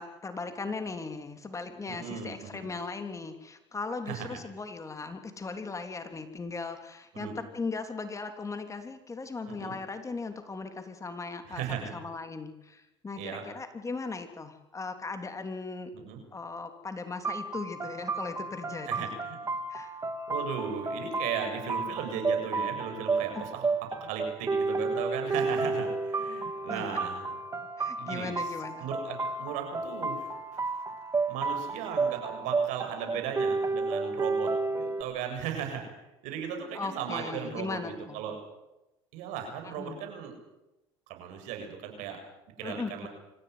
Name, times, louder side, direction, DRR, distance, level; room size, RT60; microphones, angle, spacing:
voice 1, 0.0-11.6 11.9-15.9 16.3-19.1 19.7-19.9 23.3-23.4 25.5-25.6 26.7-26.9 27.8-28.9 36.7-38.2 39.8-40.0 42.6-43.1, left 4 dB, 25° left, 7 dB, 3.2 m, -38 dB
voice 2, 1.9-2.7 4.1-4.4 7.1-7.3 9.5-9.8 11.5-11.9 13.2-13.4 15.9-16.2 18.9-19.4 20.3-23.5 23.9-27.3 28.0-30.8 31.3-38.4 39.1-40.3 41.1-42.2 42.6-43.1, right 7 dB, 70° right, 4 dB, 7.5 m, -37 dB
sound 1, 17.2-35.0, right 3 dB, 25° right, 2.7 m, -32 dB
25.5 x 15.5 x 9.7 m, 0.95 s
hypercardioid pair, 80°, 13 cm